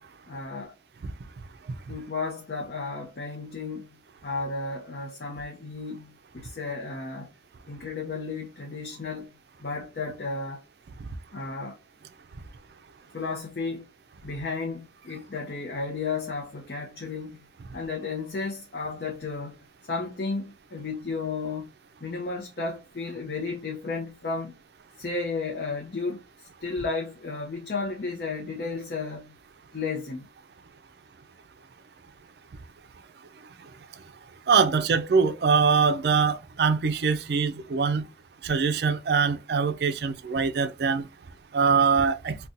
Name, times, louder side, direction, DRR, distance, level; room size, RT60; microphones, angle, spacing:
voice 1, 0.3-0.7 1.9-7.3 7.7-9.3 9.6-10.6 11.3-11.8 13.1-13.9 14.2-17.5 17.7-21.7 22.0-24.6 25.0-29.4 29.7-30.3, left 4 dB, 60° left, 0.6 m, -33 dB
voice 2, 34.5-38.0 38.4-41.1 41.5-42.3, right 5 dB, 65° right, 0.4 m, -23 dB
4.0 x 2.2 x 2.5 m
head